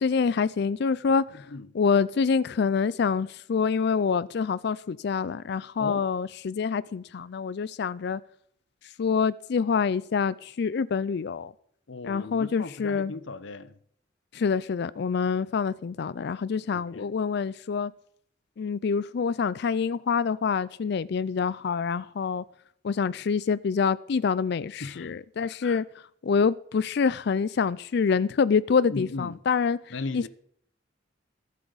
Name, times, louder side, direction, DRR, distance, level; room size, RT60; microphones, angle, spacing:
voice 1, 0.0-1.2 1.7-8.2 9.0-11.5 12.0-13.1 14.3-17.9 18.6-22.4 22.8-25.8 26.2-29.8 30.1-30.3, left 5 dB, 60° left, 0.4 m, -26 dB
voice 2, 1.3-1.7 5.8-6.0 11.9-13.8 16.7-17.1 24.8-25.1 25.4-25.8 28.9-29.4 29.9-30.3, left 3 dB, 80° left, 0.9 m, -37 dB
22.0 x 8.3 x 4.0 m
head